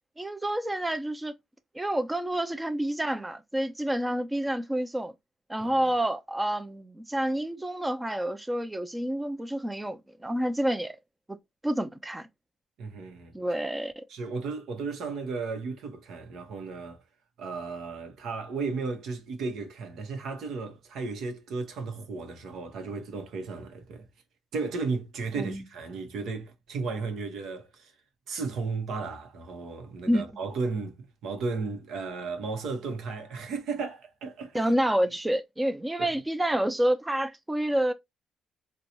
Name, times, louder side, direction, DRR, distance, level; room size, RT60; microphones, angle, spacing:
voice 1, 0.2-1.3 1.7-5.1 5.5-11.0 11.3-11.4 11.6-12.3 13.3-14.0 25.4-25.6 30.1-30.2 34.5-37.9, right 1 dB, 10° right, 0.4 m, -28 dB
voice 2, 12.8-13.3 14.1-17.0 17.4-24.1 24.5-27.9 28.3-34.7 36.0-36.1, right 4 dB, 80° right, 0.9 m, -34 dB
3.8 x 2.3 x 2.8 m
cardioid pair, 90°, 0 cm